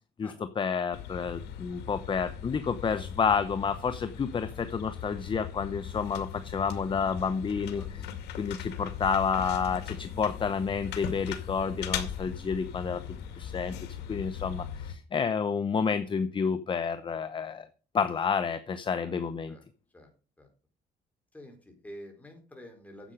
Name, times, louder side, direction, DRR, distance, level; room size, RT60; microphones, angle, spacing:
voice 1, 0.2-7.8 8.4-13.0 13.4-13.7 14.1-17.7 17.9-19.5, left 6 dB, 30° left, 11 dB, 0.9 m, -30 dB
sound 1, 0.9-14.9, left 9 dB, 80° left, 2.2 m, -39 dB
voice 2, 7.7-8.3 8.7-8.9 18.9-19.1 19.5-19.6 19.9-20.1 20.4-20.5 21.3-23.1, equal, 10° left, 3 dB, 4.6 m, -49 dB
10.0 x 8.1 x 5.2 m, 0.35 s
cardioid pair, 110°, 17 cm